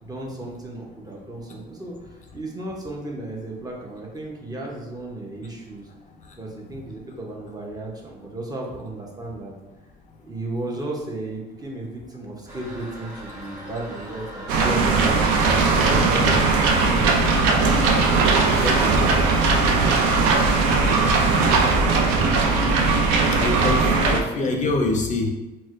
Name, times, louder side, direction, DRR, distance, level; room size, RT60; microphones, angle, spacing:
voice 1, 0.0-2.0 2.3-5.9 6.4-9.5 10.2-15.2 15.9-17.2 18.4-20.9, right 2 dB, 20° right, -1 dB, 0.7 m, -34 dB
Toilet flush, 12.5-22.8, right 1 dB, 45° right, 1.4 m, -37 dB
sound 1, 14.5-24.2, right 4 dB, 90° right, 0.4 m, -19 dB
voice 2, 23.3-25.3, left 2 dB, 40° left, 2 dB, 0.5 m, -25 dB
4.2 x 2.1 x 2.5 m, 1.0 s
supercardioid pair, 90°, 19 cm